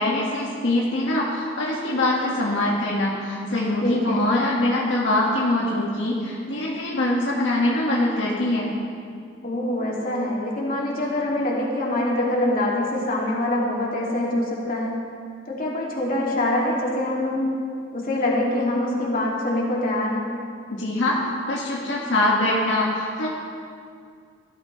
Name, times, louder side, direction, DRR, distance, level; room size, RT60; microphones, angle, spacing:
voice 1, 0.0-8.7 20.7-21.2 21.5-23.3, left 1 dB, 70° left, -5 dB, 2.0 m, -23 dB
voice 2, 3.8-4.2 9.4-15.0 15.5-17.5 17.9-20.3, left 1 dB, 50° left, -4 dB, 2.6 m, -24 dB
18.0 x 13.5 x 3.3 m, 2.2 s
head